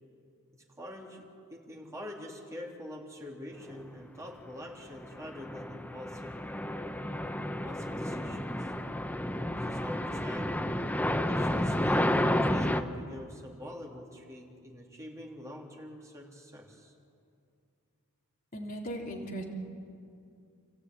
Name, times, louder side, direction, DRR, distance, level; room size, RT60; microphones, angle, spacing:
voice 1, 0.5-6.4 7.6-8.7 9.5-10.6 11.2-16.9, left 1 dB, 15° right, -1 dB, 3.4 m, -45 dB
sound 1, 5.0-12.8, left 1 dB, 5° left, 0.9 m, -31 dB
voice 2, 18.5-19.4, right 1 dB, 40° left, -1 dB, 3.5 m, -37 dB
29.0 x 15.0 x 9.6 m, 2.4 s
head